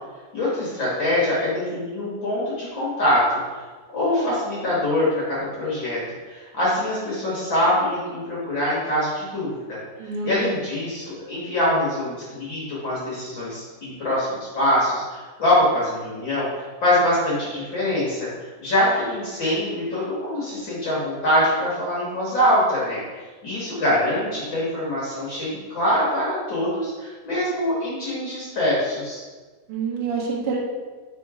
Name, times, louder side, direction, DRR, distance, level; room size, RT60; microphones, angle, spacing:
voice 1, 0.3-3.6 3.9-6.0 6.3-9.8 10.2-29.2, left 1 dB, 50° left, -8 dB, 1.5 m, -24 dB
voice 2, 10.0-10.5 29.7-30.6, right 5 dB, 75° right, -2 dB, 1.3 m, -27 dB
4.9 x 4.3 x 4.7 m, 1.4 s
omnidirectional pair, 4.0 m